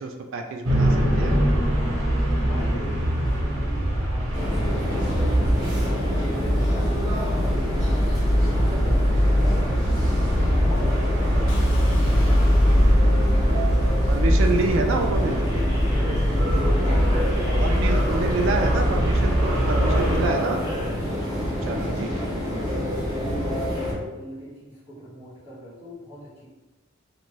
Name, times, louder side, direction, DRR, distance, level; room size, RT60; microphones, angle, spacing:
voice 1, 0.0-1.3 14.1-15.4 17.6-20.6 21.7-22.1, right 3 dB, 65° right, 4 dB, 0.3 m, -27 dB
sound 1, 0.6-20.3, equal, 85° right, 0.8 m, -22 dB
voice 2, 2.4-8.3 8.5-9.8 10.4-14.0 14.4-15.2 16.2-19.0 19.8-20.6 21.6-26.5, equal, 30° left, -11 dB, 1.3 m, -40 dB
sound 2, 4.3-23.9, equal, 20° right, 0.9 m, -28 dB
sound 3, 11.5-13.4, left 4 dB, 60° left, 0.4 m, -41 dB
2.5 x 2.5 x 3.0 m, 1.2 s
head